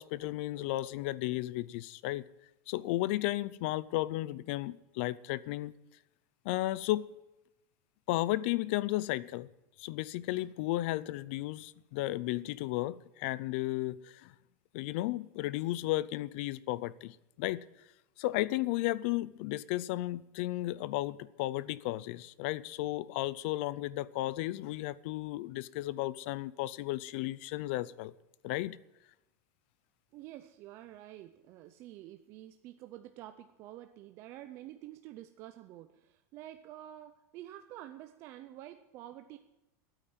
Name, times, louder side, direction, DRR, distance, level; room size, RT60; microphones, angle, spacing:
voice 1, 0.0-2.2 2.7-5.7 6.4-7.1 8.1-9.5 9.8-14.3 14.7-17.6 18.2-28.1 28.4-28.8, left 17 dB, 45° left, 20 dB, 0.5 m, -34 dB
voice 2, 30.1-39.4, right 13 dB, 30° right, 8 dB, 0.5 m, -49 dB
13.5 x 8.9 x 9.0 m, 0.93 s
supercardioid pair, 175°, 8 cm